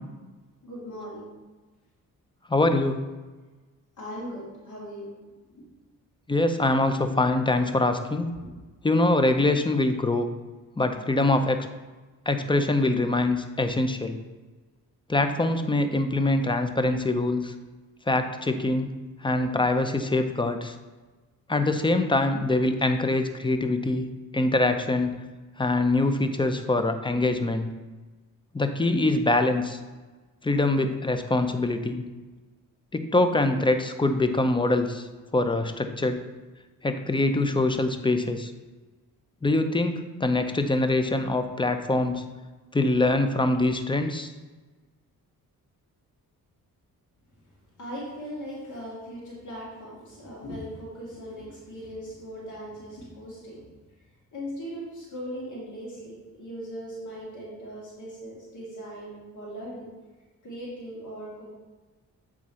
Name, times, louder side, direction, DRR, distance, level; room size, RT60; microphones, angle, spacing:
voice 1, 0.6-1.3 4.0-5.1 5.6-5.7 8.4-8.5 47.8-53.6 54.3-59.9 60.4-61.5, equal, 55° left, -6 dB, 2.2 m, -39 dB
voice 2, 2.5-3.0 6.3-8.3 8.8-10.3 10.8-11.6 12.3-14.2 15.1-17.5 18.1-18.9 19.2-20.7 21.5-24.1 24.3-25.2 25.6-27.7 28.5-29.8 30.4-32.0 32.9-35.1 35.3-36.2 36.8-38.5 39.4-42.2 42.7-44.3, left 2 dB, 15° left, 8 dB, 0.6 m, -24 dB
7.9 x 3.7 x 4.3 m, 1.2 s
cardioid pair, 75°, 35 cm